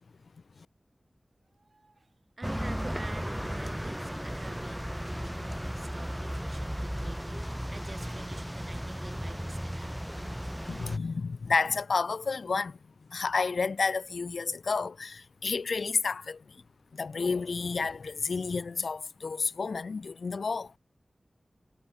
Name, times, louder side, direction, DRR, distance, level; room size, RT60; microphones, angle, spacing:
voice 1, 1.5-10.0, right 3 dB, 60° right, 2.5 m, -48 dB
sound 1, 2.4-11.0, equal, 5° right, 0.5 m, -35 dB
voice 2, 10.7-12.8 13.1-16.6 16.9-20.7, left 4 dB, 85° left, 0.9 m, -31 dB
cardioid pair, 50°, 0 cm